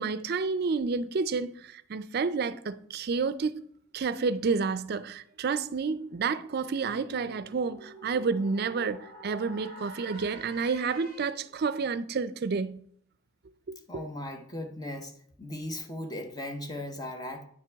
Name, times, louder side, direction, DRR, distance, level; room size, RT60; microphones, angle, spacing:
voice 1, 0.0-3.6 3.9-12.8 13.7-14.1, right 4 dB, 55° right, 0.4 m, -30 dB
sound 1, 5.4-11.6, right 2 dB, 45° left, 2.6 m, -48 dB
voice 2, 13.9-15.1 15.4-17.5, left 1 dB, 20° left, 0.9 m, -37 dB
9.5 x 5.9 x 3.4 m
head